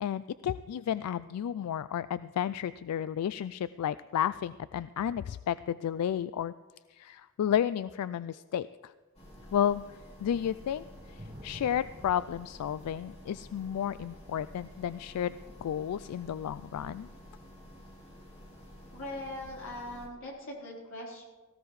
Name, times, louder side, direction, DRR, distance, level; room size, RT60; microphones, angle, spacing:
voice 1, 0.0-6.5 6.9-8.9 9.5-15.3 15.6-17.1, left 9 dB, 90° left, 15 dB, 0.3 m, -32 dB
sound 1, 9.2-20.1, equal, 30° left, 3.0 m, -51 dB
sound 2, 9.3-19.9, equal, 20° right, 4.5 m, -55 dB
voice 2, 18.9-21.3, left 1 dB, 65° left, -4 dB, 3.9 m, -41 dB
18.0 x 15.5 x 3.2 m, 1.3 s
head